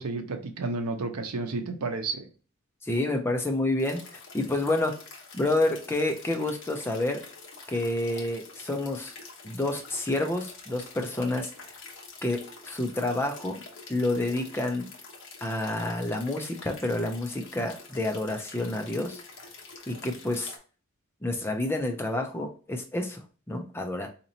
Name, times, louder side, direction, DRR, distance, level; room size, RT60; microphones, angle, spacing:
voice 1, 0.0-2.2, right 3 dB, 85° right, 7 dB, 0.6 m, -31 dB
voice 2, 2.8-4.9 5.3-7.2 7.7-9.1 9.4-11.8 12.2-13.6 13.9-14.9 15.4-19.2 19.9-20.5 21.2-24.1, left 2 dB, 10° left, 4 dB, 0.4 m, -29 dB
sound 1, 3.8-20.6, left 4 dB, 55° left, 0.8 m, -47 dB
4.0 x 2.9 x 2.6 m, 0.37 s
head